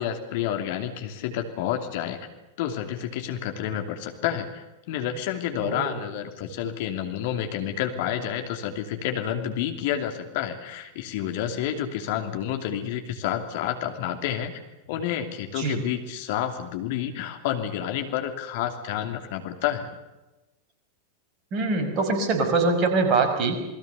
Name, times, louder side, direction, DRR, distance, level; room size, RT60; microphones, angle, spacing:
voice 1, 0.0-2.3 2.6-14.6 14.9-19.9, left 10 dB, 50° left, 5 dB, 2.9 m, -29 dB
voice 2, 5.6-6.0 15.6-15.8 21.5-23.6, right 3 dB, 35° right, 6 dB, 5.5 m, -23 dB
28.5 x 21.5 x 7.0 m, 1.1 s
figure-of-eight pair, 90°, 0 cm